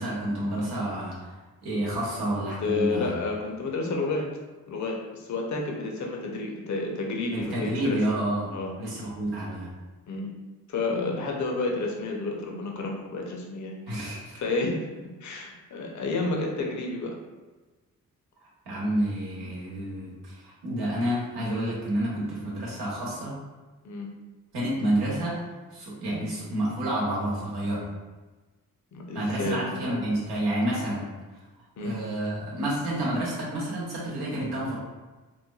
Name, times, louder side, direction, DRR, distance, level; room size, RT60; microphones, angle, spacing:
voice 1, 0.0-1.3 1.6-3.1 7.3-9.7 13.9-14.3 18.7-23.3 24.5-25.4 25.7-27.9 29.1-31.1 31.8-34.8, right 1 dB, 80° right, -5 dB, 1.0 m, -29 dB
voice 2, 2.6-4.3 4.7-8.0 8.5-8.7 10.1-10.3 10.7-14.1 14.3-17.1 23.8-24.1 28.9-29.7 31.8-31.9, left 3 dB, 50° left, 0 dB, 0.6 m, -30 dB
3.1 x 2.1 x 2.3 m, 1.2 s
supercardioid pair, 45°, 37 cm